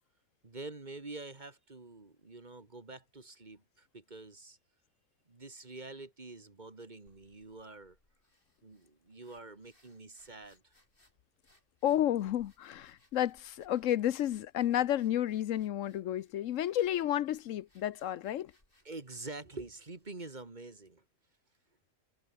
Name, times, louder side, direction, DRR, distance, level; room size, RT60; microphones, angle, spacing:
voice 1, 0.4-4.6 5.3-8.0 8.6-10.6 18.8-21.0, right 3 dB, 35° right, 2.2 m, -47 dB
sound 1, 7.1-20.5, left 1 dB, 40° left, 6.1 m, -71 dB
voice 2, 11.8-18.5, left 12 dB, 75° left, 1.0 m, -31 dB
omnidirectional pair, 1.3 m